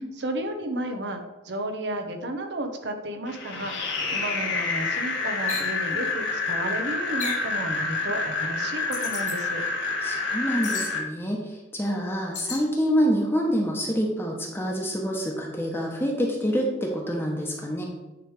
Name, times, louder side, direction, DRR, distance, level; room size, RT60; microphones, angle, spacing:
voice 1, 0.2-9.6, right 1 dB, 70° right, 5 dB, 1.0 m, -33 dB
sound 1, 3.3-11.0, left 3 dB, 80° left, 1.7 m, -28 dB
sound 2, 5.5-5.7 7.2-7.5 8.9-9.4 10.6-10.9 12.3-12.7, left 5 dB, 40° left, 1.2 m, -33 dB
voice 2, 10.0-17.8, equal, 10° left, 0 dB, 1.0 m, -26 dB
9.4 x 3.3 x 4.8 m, 1.1 s
head